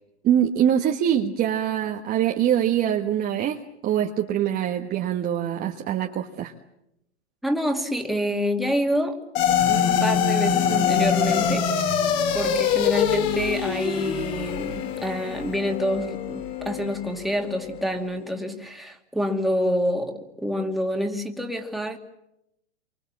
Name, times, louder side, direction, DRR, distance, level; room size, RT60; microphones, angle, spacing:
voice 1, 0.2-6.5, right 10 dB, 25° right, 2 dB, 1.5 m, -24 dB
voice 2, 7.4-9.2 9.7-11.9 12.3-22.0, equal, ahead, 3 dB, 2.4 m, -27 dB
sound 1, 9.3-17.9, left 8 dB, 45° left, 3.4 m, -24 dB
28.0 x 24.5 x 7.5 m, 0.84 s
hypercardioid pair, 125°, 35 cm